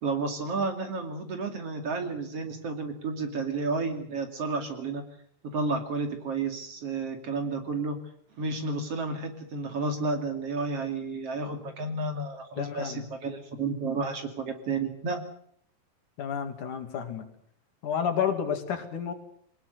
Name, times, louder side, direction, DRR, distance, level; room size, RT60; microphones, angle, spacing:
voice 1, 0.0-5.0 5.5-8.0 8.4-15.2, right 3 dB, 45° right, 6 dB, 3.4 m, -31 dB
voice 2, 12.6-13.0 16.2-17.3 17.8-19.1, left 8 dB, 65° left, 7 dB, 3.7 m, -30 dB
23.0 x 19.5 x 8.1 m, 0.65 s
omnidirectional pair, 3.9 m